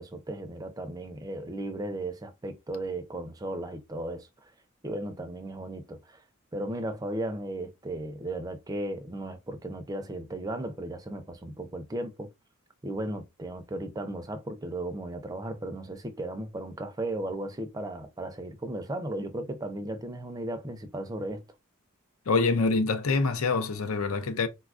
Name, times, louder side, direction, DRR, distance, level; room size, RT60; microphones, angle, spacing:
voice 1, 0.0-4.5 4.8-6.2 6.5-12.3 12.8-21.4, right 1 dB, 15° right, 0.4 m, -35 dB
voice 2, 22.3-24.5, left 4 dB, 75° left, 0.6 m, -25 dB
4.0 x 2.3 x 2.4 m
head